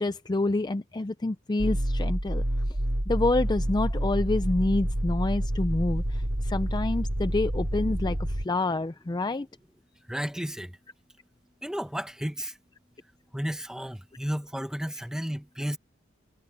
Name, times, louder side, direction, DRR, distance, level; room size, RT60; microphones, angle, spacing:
voice 1, 0.0-2.8 3.1-9.5, left 2 dB, 20° left, 0.5 m, -28 dB
sound 1, 1.6-8.5, equal, 65° right, 3.2 m, -28 dB
voice 2, 10.1-10.8 11.6-12.6 13.3-15.8, equal, 5° right, 1.3 m, -33 dB
head